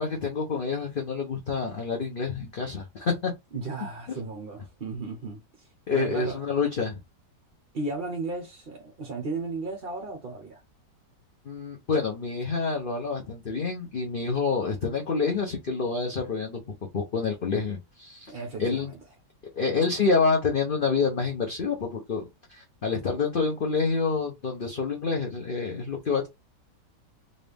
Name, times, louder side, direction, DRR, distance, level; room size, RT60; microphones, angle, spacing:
voice 1, 0.0-3.3 5.9-6.9 11.5-16.6 16.9-18.3 18.6-18.9 19.6-22.2 22.5-26.3, left 4 dB, 45° left, 0.7 m, -27 dB
voice 2, 3.5-6.4 7.7-10.6 18.3-19.0, right 3 dB, 45° right, 0.7 m, -35 dB
4.0 x 2.5 x 3.4 m
omnidirectional pair, 1.8 m